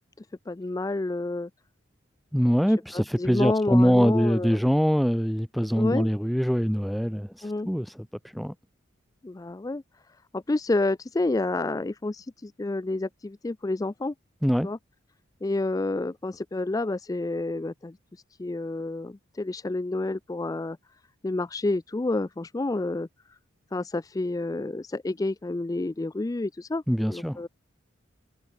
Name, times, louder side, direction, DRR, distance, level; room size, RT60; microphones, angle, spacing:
voice 1, 0.2-1.5 3.2-4.6 5.7-6.1 7.4-7.7 9.2-9.8 10.3-14.1 14.6-14.8 15.4-18.0 18.4-20.8 21.2-23.1 23.7-26.8 27.1-27.5, left 2 dB, 15° left, 0.3 m, -29 dB
voice 2, 2.3-7.3 7.6-8.1 8.3-8.5 14.4-14.7 26.9-27.4, equal, ahead, 0.7 m, -23 dB
head